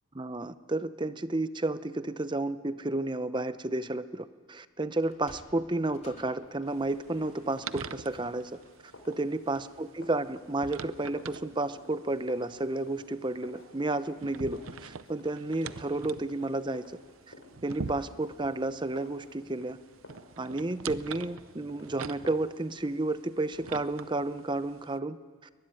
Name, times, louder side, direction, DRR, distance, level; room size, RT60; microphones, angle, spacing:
voice 1, 0.2-8.5 9.1-16.8 17.6-19.8 20.4-25.2, right 2 dB, 20° right, 13 dB, 0.7 m, -32 dB
Sliding door, 5.0-9.5, left 3 dB, 30° left, 2.6 m, -57 dB
sound 1, 5.7-22.4, left 1 dB, 75° left, 4.4 m, -54 dB
sound 2, 6.7-25.0, right 5 dB, 85° right, 0.7 m, -45 dB
22.0 x 20.5 x 9.9 m, 1.5 s
head